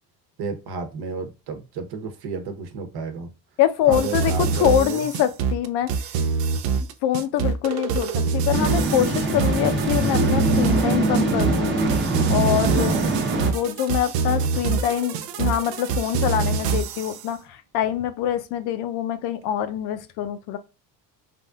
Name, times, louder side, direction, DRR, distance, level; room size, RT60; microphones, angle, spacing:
voice 1, 0.4-3.3 3.9-5.0, right 4 dB, 65° right, 0.9 m, -32 dB
voice 2, 3.6-5.9 7.0-11.7 12.0-13.0 13.4-20.6, left 11 dB, 70° left, 0.6 m, -24 dB
sound 1, 3.9-17.1, right 5 dB, 85° right, 0.6 m, -25 dB
sound 2, 8.5-13.5, right 2 dB, 25° right, 0.8 m, -23 dB
3.4 x 2.5 x 2.3 m
cardioid pair, 125°, 41 cm